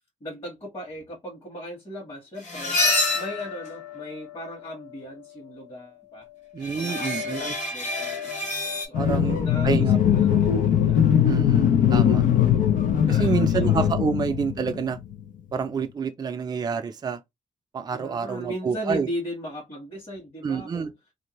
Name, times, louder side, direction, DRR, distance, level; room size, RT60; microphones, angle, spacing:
voice 1, 0.2-2.8 3.1-6.3 6.7-11.4 13.1-13.8 17.9-20.9, equal, 40° left, 1.3 m, -38 dB
sound 1, 2.4-4.5 6.6-8.9, left 2 dB, 65° left, 1.3 m, -27 dB
voice 2, 6.5-7.6 9.0-10.4 11.3-12.2 13.1-15.0 15.5-17.2 17.7-19.1 20.4-20.9, right 5 dB, 30° right, 0.4 m, -28 dB
sound 2, 8.9-15.2, left 9 dB, 85° left, 0.5 m, -20 dB
2.6 x 2.2 x 2.9 m
cardioid pair, 105°, 13 cm